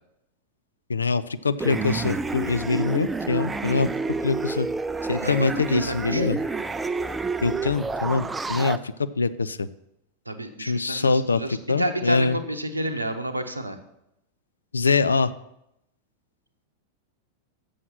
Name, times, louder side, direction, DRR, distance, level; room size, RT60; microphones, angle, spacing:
voice 1, 0.9-3.9 4.2-4.7 5.1-6.4 7.4-9.7 10.6-12.4 14.7-15.3, left 4 dB, 75° left, 14 dB, 0.4 m, -24 dB
sound 1, 1.6-8.8, right 3 dB, 10° right, 0.4 m, -29 dB
voice 2, 5.2-6.3 10.3-13.8, right 1 dB, 85° right, 7 dB, 0.8 m, -30 dB
7.6 x 6.3 x 6.0 m, 0.82 s
figure-of-eight pair, 90°, 0 cm